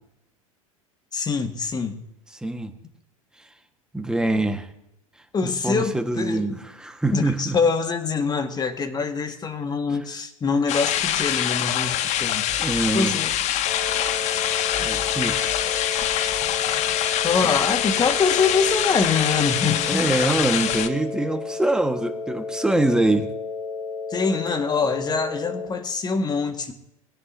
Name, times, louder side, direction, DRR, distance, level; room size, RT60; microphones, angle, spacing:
voice 1, 1.1-2.0 5.3-6.5 7.1-12.5 12.9-13.3 17.2-20.1 24.1-26.7, left 4 dB, 25° left, 8 dB, 1.8 m, -24 dB
voice 2, 2.4-2.7 3.9-4.7 5.4-7.6 12.6-13.1 14.8-15.7 17.4-17.5 19.9-23.3, right 2 dB, 5° right, 6 dB, 1.6 m, -24 dB
sound 1, 10.7-20.9, left 11 dB, 40° left, 1.1 m, -24 dB
sound 2, 13.6-25.6, left 4 dB, 90° left, 6.1 m, -33 dB
22.0 x 17.0 x 2.8 m, 0.83 s
figure-of-eight pair, 85°, 18 cm